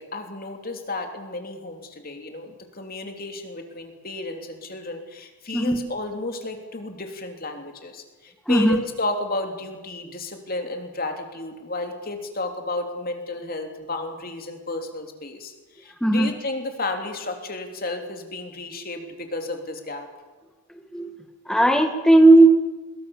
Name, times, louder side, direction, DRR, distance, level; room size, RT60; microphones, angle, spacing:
voice 1, 0.0-20.1, left 2 dB, 40° left, 4 dB, 3.1 m, -32 dB
voice 2, 8.5-8.8 16.0-16.3 20.9-21.1 21.5-22.5, right 2 dB, 5° left, 5 dB, 1.7 m, -15 dB
24.5 x 22.0 x 7.2 m, 1.2 s
head